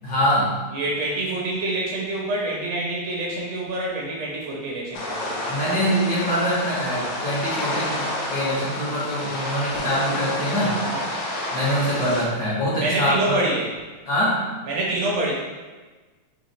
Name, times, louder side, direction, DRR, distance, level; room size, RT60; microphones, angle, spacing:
voice 1, 0.0-0.6 5.4-10.8 11.5-13.5 14.1-14.4, equal, 55° left, -8 dB, 1.1 m, -24 dB
voice 2, 0.7-5.4 10.9-11.1 12.8-13.7 14.7-15.3, right 2 dB, 70° right, -3 dB, 1.6 m, -26 dB
sound 1, 4.9-12.3, left 1 dB, 85° left, 2.2 m, -29 dB
5.6 x 2.4 x 4.0 m, 1.3 s
omnidirectional pair, 3.4 m